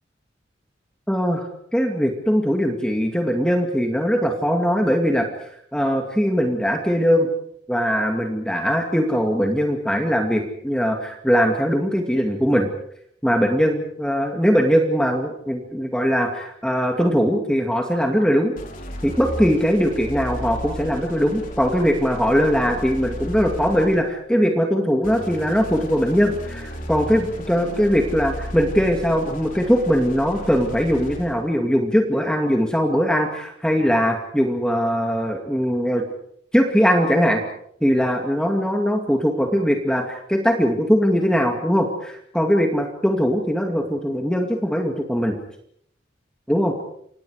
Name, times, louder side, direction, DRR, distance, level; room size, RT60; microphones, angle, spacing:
voice 1, 1.1-1.5 1.7-5.3 5.7-7.3 7.7-12.7 13.2-18.5 19.0-36.0 36.5-37.4 37.8-45.4 46.5-46.7, equal, 5° left, 2 dB, 2.3 m, -20 dB
sound 1, 18.5-24.2 25.0-31.4, left 1 dB, 45° left, 4.9 m, -34 dB
30.0 x 25.5 x 5.0 m, 0.68 s
head